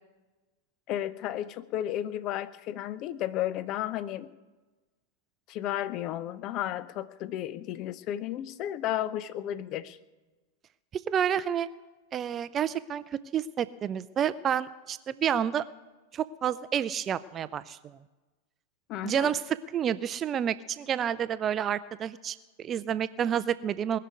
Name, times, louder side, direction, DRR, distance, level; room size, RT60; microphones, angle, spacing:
voice 1, 0.9-4.3 5.5-10.0 18.9-19.3, left 12 dB, 40° left, 15 dB, 0.7 m, -33 dB
voice 2, 10.9-11.7 12.1-15.6 16.1-18.0 19.0-19.4 19.7-24.0, right 9 dB, 25° right, 16 dB, 0.5 m, -29 dB
20.0 x 6.8 x 9.5 m, 1.2 s
figure-of-eight pair, 90°, 0 cm